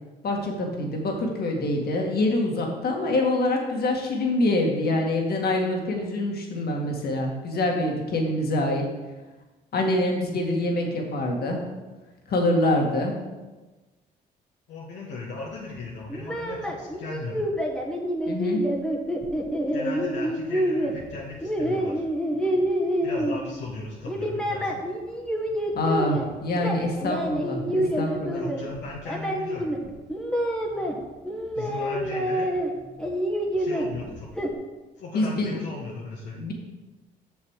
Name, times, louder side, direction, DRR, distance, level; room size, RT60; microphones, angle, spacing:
voice 1, 0.2-8.8 9.7-11.6 12.3-13.1 18.3-18.6 25.7-28.4 35.1-35.6 36.3-36.5, left 1 dB, 60° left, 0 dB, 2.0 m, -25 dB
voice 2, 14.7-17.5 19.7-22.0 23.0-24.8 28.3-29.7 31.5-32.5 33.5-34.3 35.0-36.4, left 3 dB, 75° left, -5 dB, 1.4 m, -37 dB
sound 1, 16.1-23.7 24.0-26.3 26.5-30.9 31.2-32.7 33.0-34.5, equal, 5° left, 1.5 m, -27 dB
7.1 x 6.6 x 4.8 m, 1.2 s
supercardioid pair, 75°, 18 cm